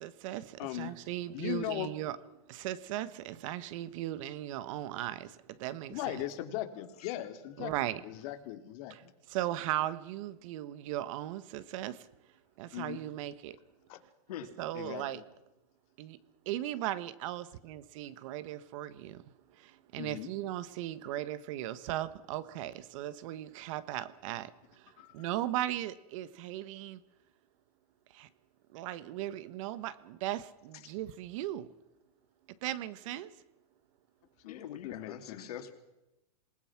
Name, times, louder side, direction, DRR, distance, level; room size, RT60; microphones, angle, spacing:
voice 1, 0.0-2.2 2.5-5.3 5.6-6.2 7.6-8.0 8.9-9.0 9.3-12.0 12.6-13.6 14.6-15.2 16.0-16.2 16.5-19.2 19.9-24.5 25.1-27.0 28.2-28.3 28.7-31.7 32.6-33.3, right 13 dB, 55° right, 1.4 m, -37 dB
voice 2, 0.6-0.9 1.3-1.9 5.9-7.7 8.0-8.9 12.7-13.0 13.9-14.0 14.7-15.0 20.0-20.3 25.0-25.3 34.5-35.4, left 14 dB, 50° left, 2.6 m, -38 dB
voice 3, 34.4-35.7, left 9 dB, 75° left, 3.2 m, -44 dB
27.5 x 19.5 x 6.0 m
hypercardioid pair, 135°, 20 cm